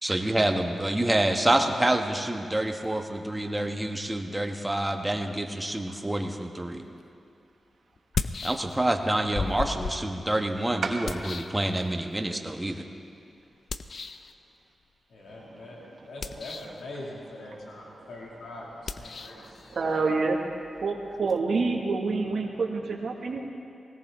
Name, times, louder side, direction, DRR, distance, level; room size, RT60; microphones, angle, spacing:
voice 1, 0.0-6.8 8.4-12.8, right 1 dB, 15° right, 4 dB, 1.3 m, -27 dB
sound 1, 7.0-7.1 8.0-9.0 9.3-12.2 13.7-14.3 16.1-16.8 18.8-21.4, left 4 dB, 65° left, 0.5 m, -36 dB
voice 2, 15.1-20.0, left 2 dB, 90° left, -4 dB, 2.3 m, -43 dB
voice 3, 19.2-20.4 20.8-23.4, right 4 dB, 70° right, 1 dB, 1.9 m, -28 dB
20.5 x 17.5 x 3.7 m, 2.4 s
cardioid pair, 65°, 0 cm